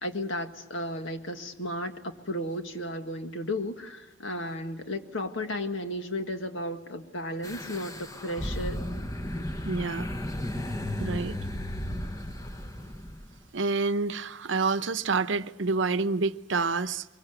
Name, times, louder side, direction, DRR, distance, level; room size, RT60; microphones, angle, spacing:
voice 1, 0.0-8.8, left 1 dB, 80° left, 1.8 m, -34 dB
sound 1, 7.4-13.4, left 1 dB, 15° left, 1.0 m, -34 dB
voice 2, 9.6-10.1 11.0-11.4 13.5-17.1, right 4 dB, 70° right, 0.8 m, -28 dB
24.0 x 22.5 x 8.1 m
head